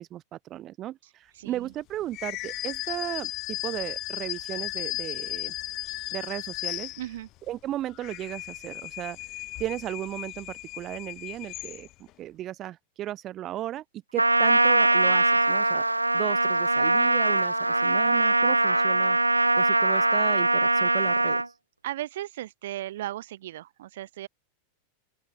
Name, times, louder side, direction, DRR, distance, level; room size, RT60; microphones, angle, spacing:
voice 1, 0.0-5.5 6.1-6.9 7.5-11.9 12.2-13.8 14.1-15.8 16.1-19.2 19.6-21.5, right 13 dB, 30° right, 5.5 m, -35 dB
voice 2, 1.3-1.7 7.0-7.3 21.8-24.3, right 14 dB, 55° right, 5.0 m, -36 dB
sound 1, 2.1-7.4 7.9-12.1, left 18 dB, 40° left, 4.9 m, -36 dB
Trumpet, 14.2-21.5, right 2 dB, 85° right, 0.3 m, -22 dB
open air
figure-of-eight pair, 90°, 0 cm